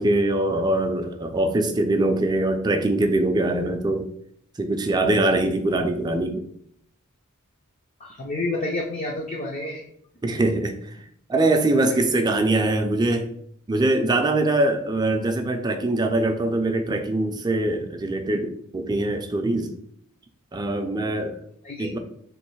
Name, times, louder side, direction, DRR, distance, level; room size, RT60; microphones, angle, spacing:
voice 1, 0.0-4.1 4.6-6.4 10.2-10.7 11.3-13.3 13.7-19.7 20.5-21.4 21.8-22.0, right 2 dB, 20° right, 5 dB, 0.4 m, -23 dB
voice 2, 8.0-9.8 21.6-21.9, left 2 dB, 35° left, -1 dB, 0.5 m, -29 dB
3.1 x 3.0 x 4.5 m, 0.68 s
head